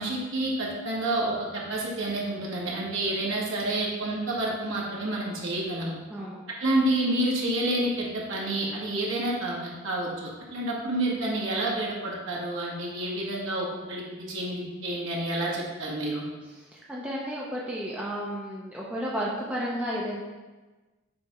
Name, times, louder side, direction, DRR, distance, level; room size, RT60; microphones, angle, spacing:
voice 1, 0.0-6.0 6.6-16.2, right 1 dB, 60° right, -3 dB, 1.5 m, -29 dB
voice 2, 6.1-6.4 16.4-20.2, equal, 5° right, -5 dB, 0.7 m, -33 dB
6.8 x 3.4 x 4.9 m, 1.2 s
head